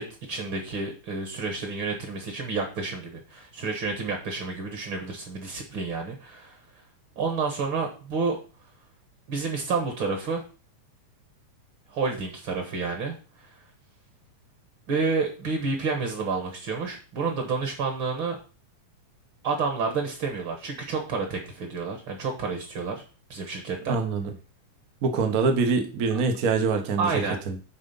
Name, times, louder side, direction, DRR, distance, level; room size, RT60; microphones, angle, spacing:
voice 1, 0.0-6.6 7.2-8.4 9.3-10.4 11.9-13.2 14.9-18.4 19.4-23.0 23.3-24.0 27.0-27.4, right 4 dB, 50° right, 3 dB, 1.7 m, -29 dB
voice 2, 23.9-24.3 25.0-27.6, right 4 dB, 70° right, 4 dB, 0.8 m, -25 dB
9.3 x 3.7 x 5.5 m, 0.37 s
omnidirectional pair, 3.4 m